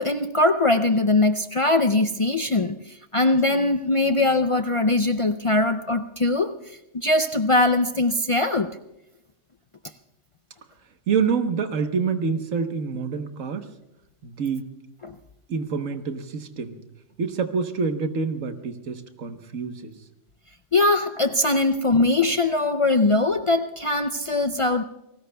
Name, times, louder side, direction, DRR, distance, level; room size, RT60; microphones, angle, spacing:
voice 1, 0.0-8.8 15.0-15.1 20.7-24.8, left 2 dB, 55° left, 8 dB, 0.3 m, -21 dB
voice 2, 11.1-13.7 14.2-14.7 15.5-16.8 17.2-19.9, right 5 dB, 85° right, 7 dB, 1.5 m, -27 dB
29.0 x 19.0 x 2.3 m, 0.93 s
omnidirectional pair, 1.3 m